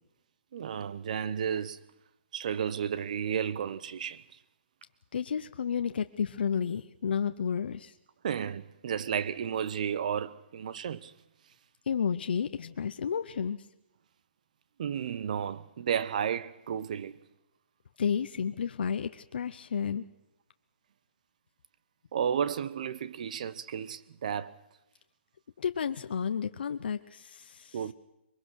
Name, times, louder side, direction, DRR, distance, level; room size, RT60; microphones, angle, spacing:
voice 1, 0.5-1.8 2.3-4.2 8.2-11.1 14.8-17.2 22.1-24.6 27.7-27.9, right 8 dB, 40° right, 0.7 m, -32 dB
voice 2, 5.1-8.0 11.9-13.6 18.0-20.0 25.6-27.8, left 7 dB, 60° left, 0.7 m, -31 dB
22.5 x 22.5 x 6.3 m
hypercardioid pair, 175°, 6 cm